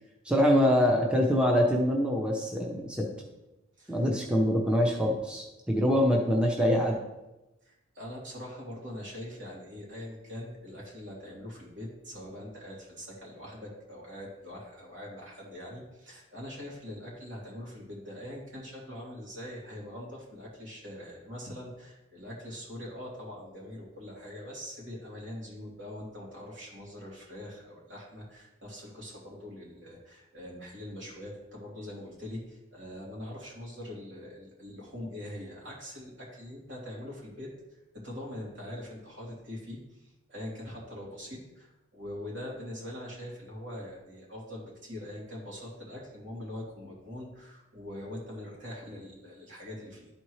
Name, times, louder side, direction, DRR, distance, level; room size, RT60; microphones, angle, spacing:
voice 1, 0.3-3.1 3.9-7.0, equal, 5° right, -1 dB, 0.7 m, -24 dB
voice 2, 7.6-37.5 38.0-50.1, left 1 dB, 70° right, -4 dB, 2.9 m, -43 dB
11.5 x 4.3 x 3.2 m, 0.98 s
head